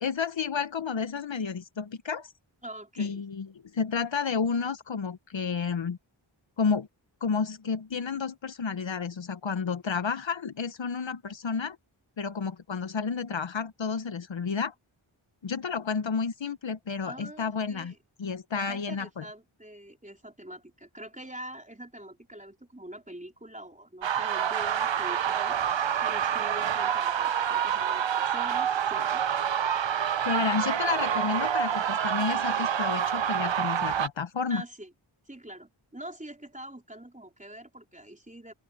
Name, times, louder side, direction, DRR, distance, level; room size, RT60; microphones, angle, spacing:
voice 1, 0.0-2.3 3.0-3.5 3.7-6.0 6.6-6.9 7.2-11.8 12.2-14.7 15.4-17.9 18.2-19.2 30.2-34.6, left 5 dB, 65° left, 0.9 m, -31 dB
voice 2, 2.6-3.2 17.0-18.0 18.5-29.2 34.5-34.9 35.3-38.5, right 1 dB, 15° right, 4.0 m, -44 dB
sound 1, 24.0-34.1, right 9 dB, 65° right, 0.7 m, -27 dB
open air
wide cardioid pair, 45°, 49 cm